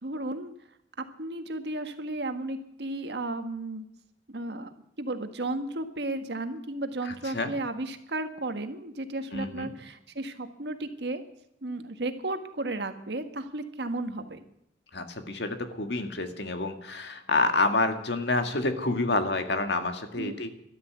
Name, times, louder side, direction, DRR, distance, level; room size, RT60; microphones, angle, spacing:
voice 1, 0.0-0.5 1.0-3.8 4.3-11.2 11.6-14.4 20.2-20.4, right 2 dB, 70° right, 8 dB, 1.6 m, -34 dB
voice 2, 7.1-7.5 9.3-9.7 14.9-20.5, left 2 dB, 75° left, 7 dB, 1.9 m, -28 dB
12.5 x 12.5 x 8.0 m, 0.79 s
head